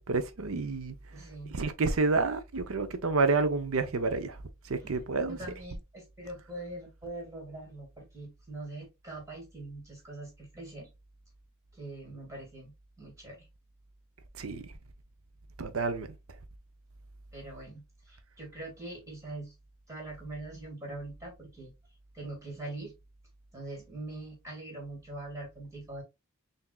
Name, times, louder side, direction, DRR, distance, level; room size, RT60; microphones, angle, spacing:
voice 1, 0.0-1.0 1.5-4.4 4.7-5.4 14.4-14.6 15.6-16.1, right 3 dB, 65° right, 0.6 m, -29 dB
voice 2, 1.1-1.6 4.8-5.0 5.3-10.9 11.7-12.7 13.0-13.5 17.3-19.5 19.9-21.7 22.1-22.9 23.5-26.0, right 2 dB, 15° right, 2.1 m, -43 dB
5.8 x 2.7 x 2.3 m
head